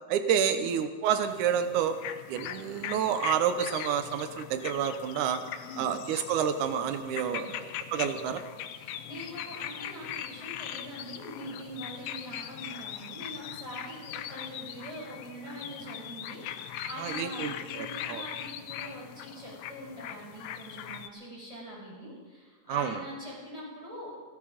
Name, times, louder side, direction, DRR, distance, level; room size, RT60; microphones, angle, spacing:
voice 1, 0.1-2.0 2.3-5.4 5.8-8.4 17.0-18.2 22.7-23.0, right 8 dB, 90° right, 9 dB, 2.4 m, -29 dB
sound 1, 1.3-21.1, left 10 dB, 85° left, 2.2 m, -40 dB
voice 2, 5.6-5.9 7.1-7.5 8.7-24.1, equal, 10° right, -5 dB, 6.7 m, -43 dB
16.5 x 15.5 x 5.1 m, 1.4 s
omnidirectional pair, 3.4 m